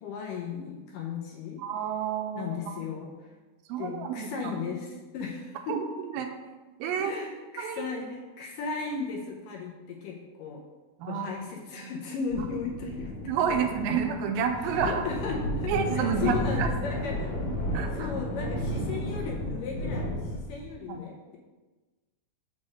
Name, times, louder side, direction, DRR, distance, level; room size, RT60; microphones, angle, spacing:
voice 1, 0.0-1.6 2.3-3.1 3.8-5.8 7.0-10.6 11.1-13.1 13.5-13.7 14.7-17.4 17.9-21.4, left 4 dB, 75° left, -1 dB, 2.2 m, -36 dB
voice 2, 1.6-2.6 3.7-4.5 5.7-6.3 6.8-7.1 7.6-7.9 11.0-11.3 13.2-15.0 15.7-16.7 17.4-18.1 20.8-21.0, right 7 dB, 85° right, 5 dB, 2.4 m, -30 dB
sound 1, 12.3-20.6, left 1 dB, 55° left, 2.7 m, -32 dB
6.2 x 4.0 x 6.3 m, 1.2 s
omnidirectional pair, 4.3 m